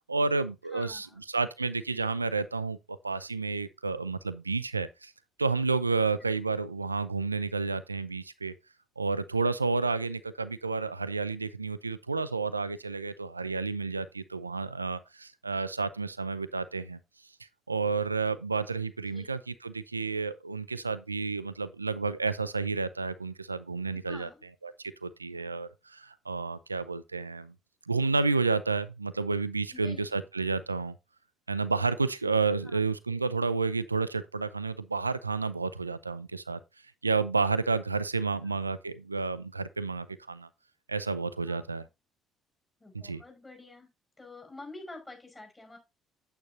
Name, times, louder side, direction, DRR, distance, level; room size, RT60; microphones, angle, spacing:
voice 1, 0.1-5.1 5.4-8.5 9.0-17.0 17.7-24.3 24.6-27.5 27.9-30.9 31.5-36.6 37.0-40.5 40.9-41.8 43.0-43.2, right 4 dB, 90° right, 0.4 m, -30 dB
voice 2, 0.7-1.2 19.1-19.3 23.9-24.4 29.7-30.1 32.6-32.8 38.3-38.6 41.4-41.6 42.8-43.9 44.2-45.8, left 2 dB, 20° left, 5.5 m, -48 dB
8.7 x 8.7 x 2.8 m
figure-of-eight pair, 50°, 0 cm